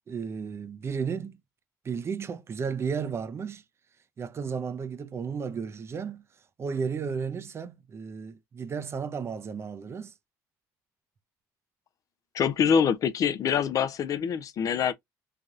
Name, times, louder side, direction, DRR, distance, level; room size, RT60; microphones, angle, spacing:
voice 1, 0.1-1.4 1.8-3.6 4.2-6.2 6.6-10.1, right 6 dB, 35° right, 0.5 m, -33 dB
voice 2, 12.3-14.9, left 7 dB, 50° left, 0.4 m, -25 dB
3.3 x 2.3 x 2.5 m
cardioid pair, 95°, 8 cm